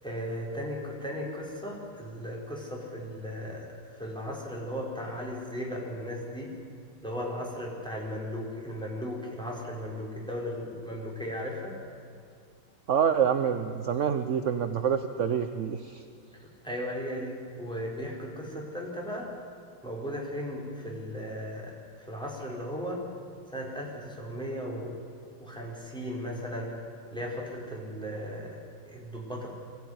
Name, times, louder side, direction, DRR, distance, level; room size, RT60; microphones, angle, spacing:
voice 1, 0.0-3.7 4.0-6.5 7.0-11.8 16.3-19.3 19.8-23.1 23.5-25.0 25.4-26.8 27.1-29.5, equal, ahead, -3 dB, 4.6 m, -36 dB
voice 2, 12.9-16.0, right 8 dB, 55° right, 8 dB, 0.8 m, -27 dB
23.5 x 15.5 x 9.6 m, 2.3 s
omnidirectional pair, 2.2 m